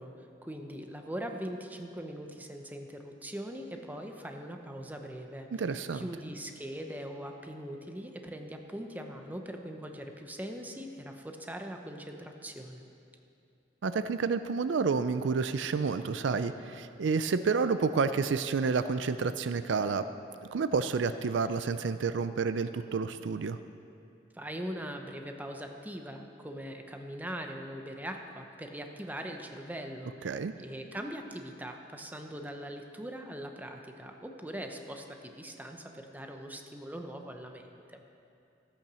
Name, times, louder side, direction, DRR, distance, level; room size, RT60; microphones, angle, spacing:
voice 1, 0.0-5.5 5.9-12.8 24.3-38.0, equal, 10° right, 4 dB, 0.8 m, -41 dB
voice 2, 5.5-6.0 13.8-20.0 20.5-23.6 30.2-30.5, right 5 dB, 75° right, 11 dB, 0.4 m, -29 dB
13.5 x 8.7 x 6.2 m, 2.6 s
head